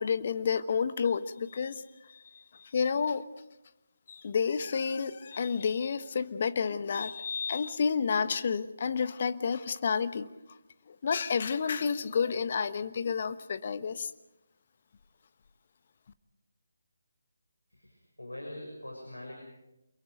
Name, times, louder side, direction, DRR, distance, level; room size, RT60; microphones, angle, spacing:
voice 1, 0.0-1.8 2.7-3.2 4.1-10.3 10.9-14.1, left 6 dB, 45° left, 12 dB, 1.2 m, -30 dB
voice 2, 17.7-19.3, left 1 dB, 85° left, 0 dB, 6.5 m, -43 dB
28.5 x 22.5 x 5.3 m, 0.95 s
figure-of-eight pair, 155°, 0 cm